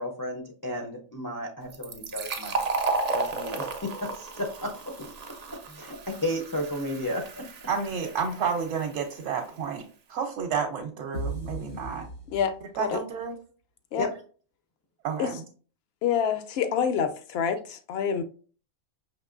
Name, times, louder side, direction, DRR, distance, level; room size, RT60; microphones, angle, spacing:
voice 1, 0.0-2.6 3.1-4.9 5.5-7.5 12.9-13.0 13.9-14.1, left 1 dB, 35° left, 0.3 m, -33 dB
Fill (with liquid), 1.7-9.1, right 3 dB, 85° right, 0.3 m, -33 dB
voice 2, 7.7-9.8 10.1-12.1 12.8-13.4 15.0-15.4, right 6 dB, 70° right, 0.9 m, -30 dB
sound 1, 11.1-13.0, right 1 dB, 85° left, 2.5 m, -36 dB
voice 3, 16.0-18.2, left 7 dB, 65° left, 0.7 m, -27 dB
5.4 x 2.9 x 2.5 m
omnidirectional pair, 1.4 m